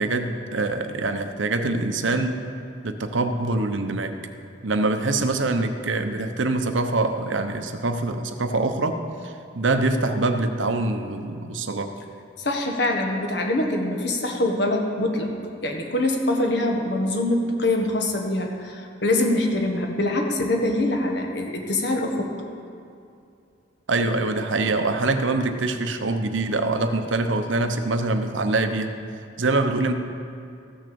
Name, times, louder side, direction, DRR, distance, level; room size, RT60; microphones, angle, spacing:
voice 1, 0.0-2.5 2.8-4.2 4.6-11.9 23.9-28.9 29.4-29.9, right 2 dB, 85° right, 7 dB, 0.9 m, -24 dB
voice 2, 12.4-15.3 15.6-22.3, left 1 dB, 65° left, 2 dB, 1.5 m, -24 dB
14.5 x 6.4 x 6.9 m, 2.5 s
head